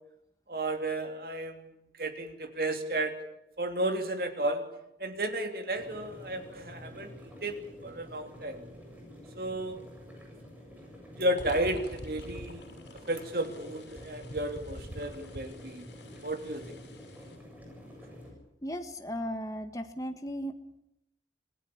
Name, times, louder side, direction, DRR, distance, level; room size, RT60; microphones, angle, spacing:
voice 1, 0.5-1.7 2.0-3.2 3.6-4.7 5.0-7.6 7.8-8.7 9.3-9.8 11.1-12.6 13.1-15.9 16.2-16.6, right 1 dB, 55° right, 6 dB, 3.1 m, -33 dB
sound 1, 5.7-18.3, equal, 10° right, 7.5 m, -49 dB
sound 2, 11.4-17.4, left 1 dB, 75° left, 6.6 m, -47 dB
voice 2, 18.6-20.8, equal, 20° left, 7 dB, 1.6 m, -36 dB
27.0 x 17.5 x 8.7 m, 0.83 s
head